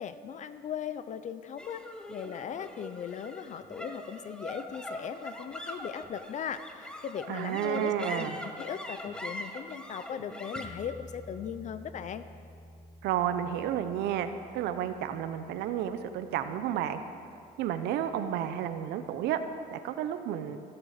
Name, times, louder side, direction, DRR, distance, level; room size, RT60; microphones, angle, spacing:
voice 1, 0.0-1.8 2.1-12.2, left 8 dB, 45° left, 12 dB, 0.5 m, -38 dB
sound 1, 1.6-18.1, left 1 dB, 5° left, 1.0 m, -44 dB
voice 2, 7.3-8.4 13.0-14.3 14.5-17.0 17.6-19.4 19.7-20.6, right 10 dB, 85° right, 10 dB, 0.8 m, -31 dB
15.5 x 7.1 x 6.6 m, 2.4 s
cardioid pair, 110°, 17 cm